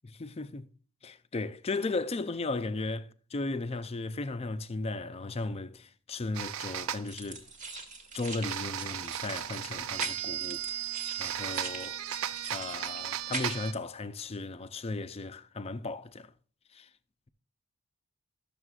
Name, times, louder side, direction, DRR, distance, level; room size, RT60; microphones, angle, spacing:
voice 1, 0.0-0.7 1.0-7.5 8.1-10.9 11.2-12.0 12.5-16.3 16.7-16.9, left 3 dB, 30° left, 0.5 m, -36 dB
sound 1, 6.3-7.0 8.4-13.7, right 10 dB, 70° right, 0.4 m, -35 dB
sound 2, 7.1-13.7, right 3 dB, 40° right, 1.4 m, -42 dB
12.5 x 6.9 x 2.4 m
head